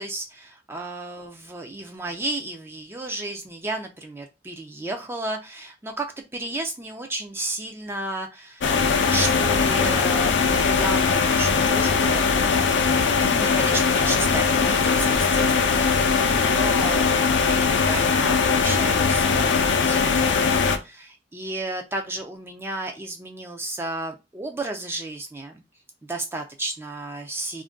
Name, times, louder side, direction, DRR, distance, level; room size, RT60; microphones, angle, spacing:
voice 1, 0.0-6.1 6.3-8.7 9.1-12.3 13.2-19.6 19.9-25.6 26.0-27.6, right 2 dB, 15° right, 3 dB, 0.3 m, -33 dB
sound 1, 8.6-20.8, left 5 dB, 85° left, 0.4 m, -20 dB
2.5 x 2.2 x 3.4 m, 0.26 s
head